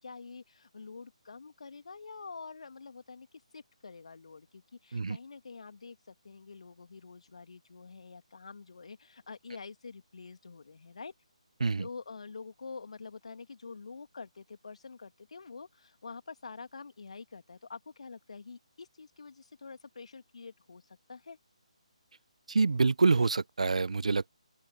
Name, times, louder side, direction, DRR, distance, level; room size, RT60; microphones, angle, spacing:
voice 1, 0.0-3.3 3.5-11.1 11.8-21.4, left 4 dB, 60° left, 2.1 m, -47 dB
voice 2, 22.5-24.3, right 4 dB, 65° right, 0.6 m, -26 dB
open air
figure-of-eight pair, 145°, 4 cm